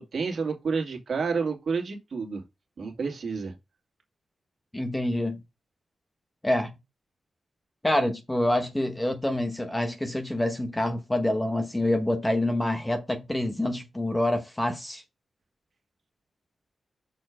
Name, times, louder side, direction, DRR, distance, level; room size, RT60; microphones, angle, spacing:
voice 1, 0.0-2.4 2.8-3.5, right 5 dB, 55° right, 2.2 m, -30 dB
voice 2, 4.7-5.4 6.4-6.7 7.8-15.0, left 1 dB, 10° left, 1.0 m, -27 dB
6.6 x 4.4 x 4.8 m
wide cardioid pair, 155°, 0 cm